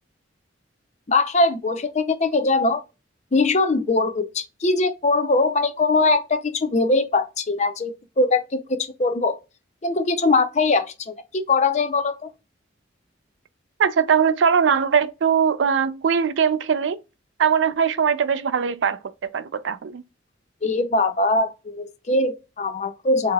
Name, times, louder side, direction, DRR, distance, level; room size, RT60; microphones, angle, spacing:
voice 1, 1.1-2.8 3.3-9.4 9.8-12.3 20.6-23.3, left 3 dB, 35° left, 0.5 m, -21 dB
voice 2, 13.8-17.0 17.4-20.0, right 7 dB, 70° right, 0.4 m, -21 dB
4.6 x 2.8 x 2.3 m
head